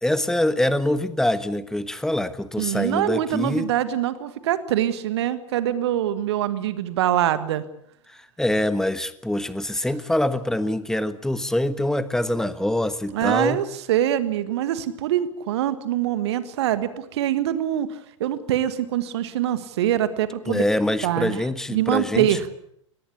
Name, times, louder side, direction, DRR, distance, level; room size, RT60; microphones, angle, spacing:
voice 1, 0.0-3.7 8.4-13.6 20.5-22.4, left 1 dB, 5° left, 14 dB, 1.3 m, -24 dB
voice 2, 2.6-7.6 13.1-20.6 21.0-22.5, right 11 dB, 55° right, 13 dB, 1.7 m, -24 dB
23.0 x 19.0 x 8.4 m, 0.70 s
figure-of-eight pair, 95°, 16 cm